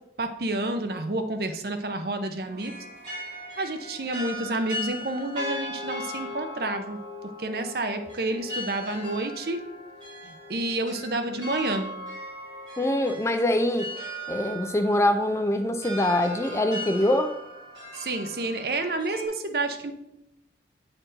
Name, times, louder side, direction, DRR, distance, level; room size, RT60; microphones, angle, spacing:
voice 1, 0.2-2.8 3.6-7.0 7.4-9.6 10.2-11.9 17.9-19.9, right 2 dB, 55° right, 7 dB, 0.7 m, -29 dB
sound 1, 2.5-19.3, equal, 25° right, 2.9 m, -38 dB
voice 2, 12.8-13.9 14.3-17.3, left 1 dB, 15° left, 7 dB, 0.4 m, -24 dB
8.9 x 4.4 x 3.9 m, 0.84 s
head